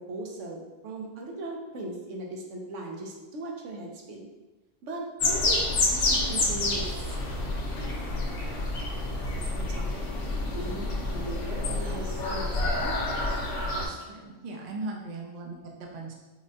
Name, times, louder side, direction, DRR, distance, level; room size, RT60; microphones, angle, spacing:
voice 1, 0.1-4.3 4.8-5.6 5.9-7.6 9.5-9.9 10.5-13.0, right 2 dB, 75° right, 0 dB, 1.0 m, -38 dB
sound 1, 5.2-13.9, left 2 dB, 75° left, 0.9 m, -28 dB
voice 2, 13.7-16.1, right 2 dB, 55° right, -1 dB, 0.5 m, -39 dB
4.7 x 2.1 x 2.7 m, 1.2 s
omnidirectional pair, 1.3 m